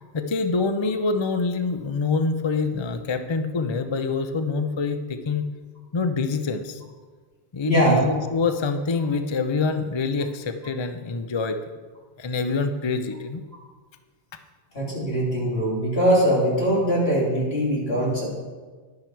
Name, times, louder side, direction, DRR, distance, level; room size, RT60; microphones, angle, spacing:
voice 1, 0.1-5.4 5.9-6.8 7.5-11.6 12.2-13.4, left 4 dB, 35° left, 8 dB, 0.5 m, -25 dB
voice 2, 7.7-8.0 14.7-18.2, equal, 70° left, -4 dB, 3.5 m, -21 dB
10.5 x 10.5 x 4.6 m, 1.4 s
omnidirectional pair, 1.1 m